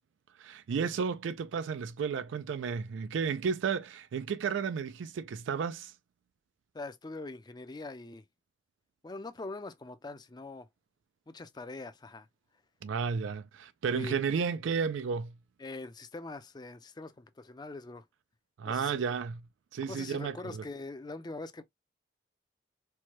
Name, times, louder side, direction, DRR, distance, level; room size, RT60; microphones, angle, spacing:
voice 1, 0.4-5.9 12.8-15.3 18.6-19.4 19.7-20.6, right 6 dB, 80° right, 0.3 m, -32 dB
voice 2, 6.7-8.2 9.0-10.7 11.3-12.3 13.9-14.1 15.6-18.0 18.7-19.0 19.9-21.6, left 2 dB, 20° left, 0.4 m, -43 dB
4.6 x 2.2 x 2.8 m
head